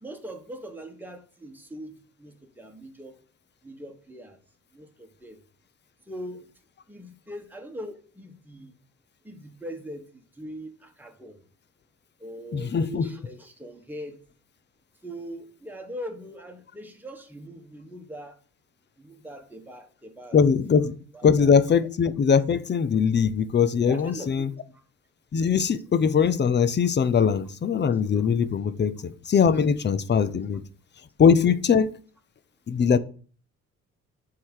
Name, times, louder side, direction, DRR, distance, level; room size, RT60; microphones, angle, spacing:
voice 1, 0.0-3.2 3.6-4.4 4.7-5.4 6.1-6.5 6.9-8.7 9.2-11.4 12.2-14.2 15.0-18.4 19.0-20.4 21.1-21.5 23.9-24.8 28.1-28.3, equal, 5° right, 1.6 m, -41 dB
voice 2, 12.5-13.1 20.3-20.9 21.2-24.5 25.3-30.6 31.2-31.9 32.7-33.0, left 6 dB, 35° left, 0.7 m, -21 dB
7.5 x 3.9 x 6.5 m
cardioid pair, 90°, 30 cm